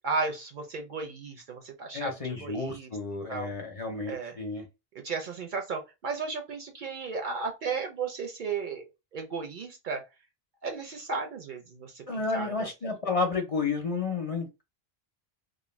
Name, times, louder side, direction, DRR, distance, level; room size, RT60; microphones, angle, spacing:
voice 1, 0.0-2.9 3.3-3.5 4.1-4.4 5.0-10.0 10.6-12.0 12.3-12.7, right 4 dB, 60° right, 0.6 m, -34 dB
voice 2, 1.9-4.6 12.1-14.6, left 4 dB, 40° left, 0.6 m, -31 dB
2.4 x 2.1 x 3.1 m
omnidirectional pair, 1.0 m